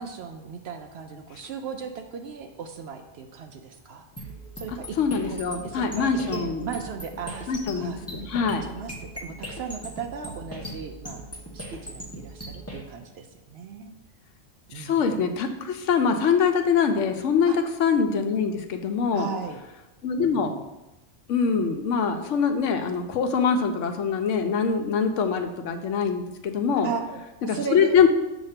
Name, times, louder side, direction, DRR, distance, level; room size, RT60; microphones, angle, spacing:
voice 1, 0.0-4.0 4.6-5.0 5.3-8.0 8.3-8.4 8.6-11.3 11.5-13.9 14.7-15.2 17.5-17.6 19.1-19.6 20.1-20.6 26.8-28.1, right 6 dB, 65° right, 5 dB, 0.7 m, -37 dB
sound 1, 4.2-12.8, right 1 dB, 15° left, 1.0 m, -39 dB
voice 2, 5.0-6.7 7.5-8.6 14.7-19.3 20.0-20.5 21.3-26.9 27.5-28.1, left 6 dB, 75° left, 6 dB, 0.9 m, -24 dB
6.4 x 2.9 x 5.7 m, 0.99 s
omnidirectional pair, 1.3 m